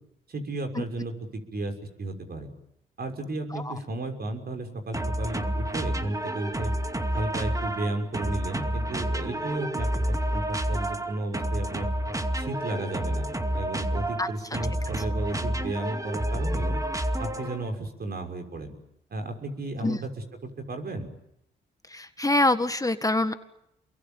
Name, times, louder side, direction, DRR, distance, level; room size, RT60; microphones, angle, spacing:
voice 1, 0.3-2.5 3.0-6.7 7.1-11.9 12.3-16.8 17.2-18.7 19.1-20.1 20.4-21.1, right 2 dB, 50° right, 5 dB, 6.2 m, -33 dB
sound 1, 4.9-17.7, right 1 dB, 15° right, 2.4 m, -29 dB
voice 2, 21.9-23.3, left 2 dB, 15° left, 9 dB, 1.8 m, -25 dB
28.5 x 22.5 x 9.1 m, 0.81 s
supercardioid pair, 60°, 20 cm